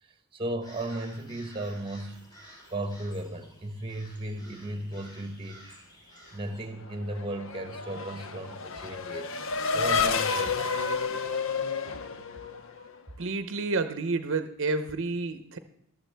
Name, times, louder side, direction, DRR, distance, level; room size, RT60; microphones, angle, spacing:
voice 1, 0.0-2.2 2.7-5.6 6.3-10.8, right 1 dB, 25° right, 1.1 m, -36 dB
sound 1, 0.6-6.7, equal, 20° left, 4.4 m, -52 dB
Race car auto racing / Accelerating revving vroom, 6.9-13.0, left 5 dB, 65° left, 0.8 m, -30 dB
voice 2, 13.2-15.6, right 3 dB, 60° right, 0.7 m, -30 dB
14.0 x 12.5 x 3.4 m
head